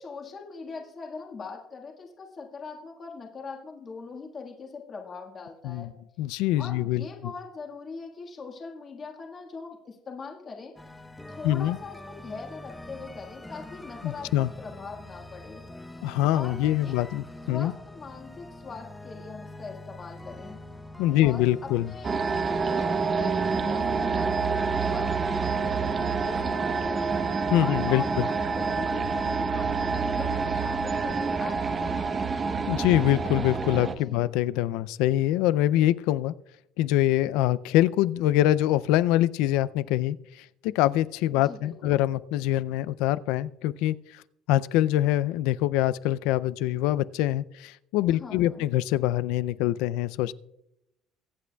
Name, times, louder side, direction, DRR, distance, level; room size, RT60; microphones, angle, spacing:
voice 1, 0.0-5.9 6.6-10.7 11.3-15.6 16.3-16.6 16.8-17.0 17.5-20.6 21.2-27.3 27.6-32.6 34.1-34.3 41.4-42.0 48.1-48.7, left 4 dB, 30° left, 1 dB, 1.5 m, -41 dB
voice 2, 6.2-7.1 11.4-11.8 14.0-14.5 16.0-17.7 21.0-21.9 27.5-28.3 32.7-36.3 36.8-44.2 44.5-50.3, left 14 dB, 85° left, 17 dB, 0.3 m, -24 dB
sound 1, 10.8-25.9, left 1 dB, 5° left, 0.7 m, -44 dB
sound 2, 22.0-34.0, right 4 dB, 25° right, 0.8 m, -27 dB
23.0 x 8.5 x 2.3 m, 0.83 s
cardioid pair, 140°, 0 cm